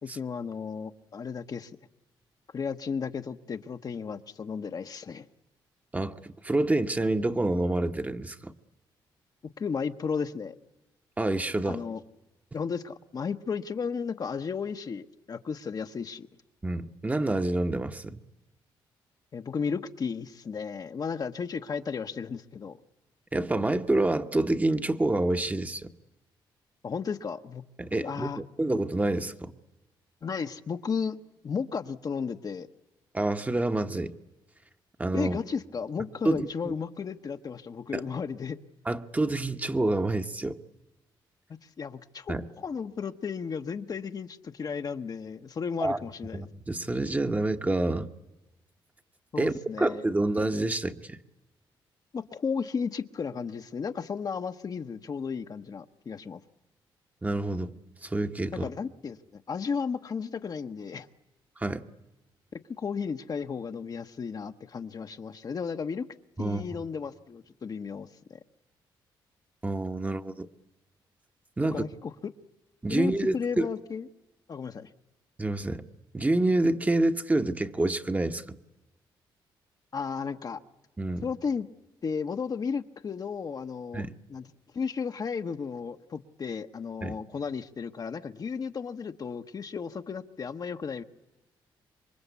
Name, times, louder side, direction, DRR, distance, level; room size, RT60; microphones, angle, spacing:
voice 1, 0.0-1.7 2.5-5.2 9.4-10.5 11.6-12.0 12.5-16.3 19.3-22.8 26.8-27.6 28.0-28.4 30.2-31.2 31.4-32.7 35.1-38.6 41.8-46.5 49.3-50.0 52.1-56.4 58.5-61.1 62.5-66.1 66.4-68.4 71.7-72.3 72.9-74.1 74.5-74.9 79.9-80.6 81.2-81.7 82.0-84.5 84.7-91.0, left 6 dB, 45° left, 7 dB, 1.0 m, -34 dB
voice 2, 5.9-8.5 11.2-11.8 16.6-18.2 23.3-25.9 27.8-29.5 33.1-34.1 35.0-35.4 36.2-36.7 37.9-38.0 38.8-40.6 42.3-42.4 45.8-46.0 46.3-48.1 49.4-51.2 57.2-57.7 58.0-58.7 61.6-61.9 66.4-66.6 69.6-70.5 71.6-71.8 72.8-73.7 75.4-75.8 76.1-78.6 81.0-81.3 83.9-84.1 87.0-87.2, right 2 dB, 15° right, 7 dB, 1.1 m, -27 dB
27.0 x 23.5 x 8.3 m, 1.0 s
cardioid pair, 85°, 9 cm